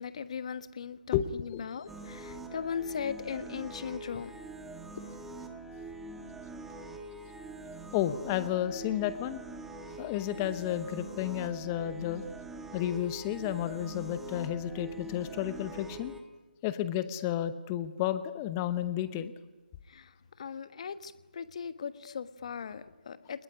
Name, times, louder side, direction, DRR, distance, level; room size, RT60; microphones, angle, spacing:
voice 1, 0.0-4.3 19.9-20.1 20.4-23.4, left 6 dB, 35° left, 12 dB, 1.3 m, -38 dB
voice 2, 1.1-1.6 7.9-9.4 10.0-12.2 12.7-16.1 16.6-19.3, left 11 dB, 15° left, 13 dB, 0.8 m, -32 dB
sound 1, 1.9-16.2, right 2 dB, 5° right, 1.2 m, -44 dB
27.5 x 20.0 x 9.9 m, 1.2 s
figure-of-eight pair, 160°, 5 cm